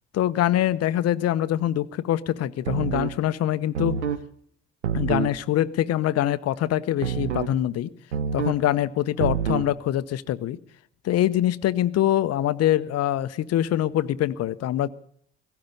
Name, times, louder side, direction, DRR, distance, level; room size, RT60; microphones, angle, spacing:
voice 1, 0.1-4.0 4.9-7.9 8.3-10.6 11.0-14.9, left 12 dB, 45° left, 15 dB, 0.9 m, -24 dB
sound 1, 2.7-3.2 3.7-4.2 4.8-5.4 7.0-7.6 8.1-8.6 9.2-9.7, right 8 dB, 85° right, 1.0 m, -27 dB
17.0 x 16.0 x 5.4 m, 0.64 s
figure-of-eight pair, 50°, 34 cm